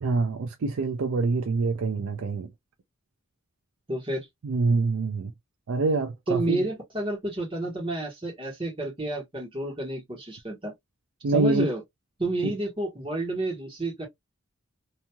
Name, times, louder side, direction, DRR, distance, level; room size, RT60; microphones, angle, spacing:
voice 1, 0.0-2.5 4.4-5.3 5.7-6.6 11.2-11.7 12.4-12.5, right 3 dB, 75° right, 0.4 m, -25 dB
voice 2, 3.9-4.3 6.3-10.7 11.3-11.8 12.2-14.1, right 2 dB, 25° right, 1.3 m, -30 dB
3.0 x 2.7 x 2.2 m
head